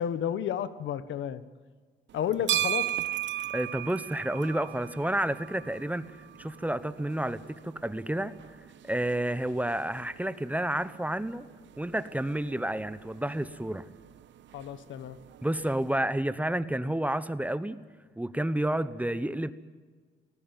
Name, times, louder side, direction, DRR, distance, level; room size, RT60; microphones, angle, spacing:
voice 1, 0.0-1.4 2.1-2.9 14.5-15.2, left 9 dB, 75° left, 14 dB, 1.3 m, -32 dB
sound 1, 2.1-16.0, right 13 dB, 70° right, 0.8 m, -38 dB
voice 2, 3.5-8.3 8.8-11.5 11.8-13.9 15.4-17.8 18.2-19.5, right 1 dB, 5° right, 14 dB, 1.0 m, -30 dB
19.0 x 17.0 x 9.1 m, 1.5 s
cardioid pair, 90°, 20 cm